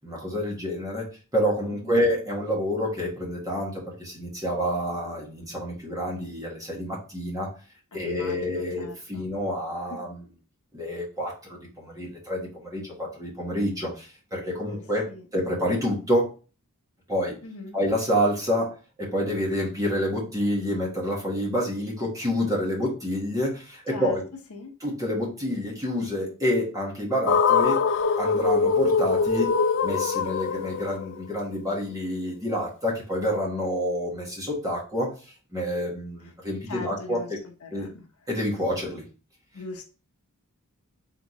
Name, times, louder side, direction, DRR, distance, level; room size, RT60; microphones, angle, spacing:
voice 1, 0.0-1.1 1.3-7.5 7.9-10.3 10.7-15.1 15.3-16.3 17.1-17.4 17.7-24.2 24.8-27.8 28.2-29.6 29.8-35.1 35.5-37.4 37.7-37.9 38.3-39.0, equal, 15° right, -3 dB, 1.4 m, -28 dB
voice 2, 1.7-2.1 7.9-9.3 9.9-10.0 14.7-14.8 15.1-15.3 17.4-17.8 23.9-24.2 24.5-24.7 36.7-38.0 39.5-39.8, left 3 dB, 70° left, 3 dB, 0.9 m, -41 dB
sound 1, 27.3-31.5, left 5 dB, 55° left, 0.3 m, -23 dB
3.9 x 3.7 x 3.0 m, 0.35 s
head